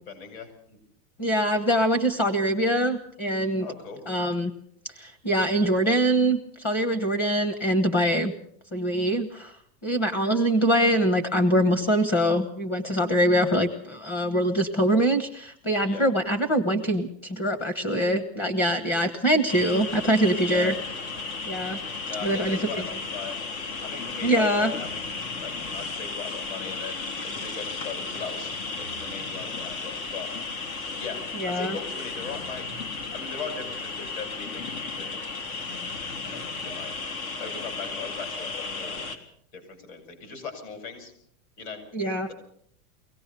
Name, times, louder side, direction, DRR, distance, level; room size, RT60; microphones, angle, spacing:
voice 1, 0.1-0.8 3.6-4.0 15.8-16.1 20.4-20.7 22.0-23.4 23.8-25.0 25.4-30.3 31.0-32.6 33.1-35.2 36.2-37.1 37.4-39.0 39.5-41.1 41.6-41.8, left 5 dB, 50° left, 7 dB, 6.3 m, -39 dB
voice 2, 1.2-3.7 4.1-4.5 5.0-8.3 8.7-9.5 9.8-20.7 21.4-21.8 22.2-22.6 24.2-24.7 31.4-31.8 41.9-42.3, right 1 dB, 20° left, 10 dB, 1.2 m, -23 dB
sound 1, 19.5-39.2, left 4 dB, 75° left, 3.4 m, -34 dB
24.0 x 17.5 x 6.8 m, 0.66 s
supercardioid pair, 165°, 42 cm